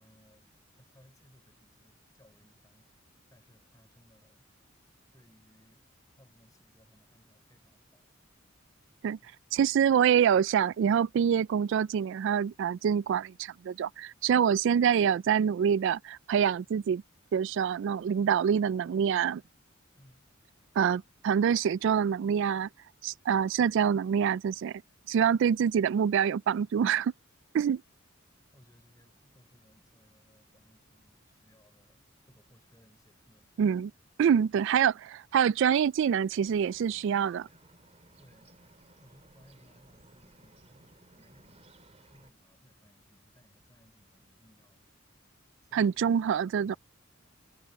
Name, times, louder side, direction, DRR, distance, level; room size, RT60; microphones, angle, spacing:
voice 1, 0.0-4.5 5.1-8.1 9.2-9.4 19.9-20.3 28.5-33.7 38.2-38.7 39.0-44.8 45.6-46.8, equal, 20° left, 6.1 m, -63 dB
voice 2, 9.5-17.0 17.3-19.4 20.8-22.7 23.0-24.8 25.1-27.1 27.5-27.8 33.6-33.9 34.2-37.5 45.7-46.8, right 8 dB, 65° right, 0.3 m, -26 dB
Bird, 36.4-42.3, right 2 dB, 35° right, 3.3 m, -59 dB
head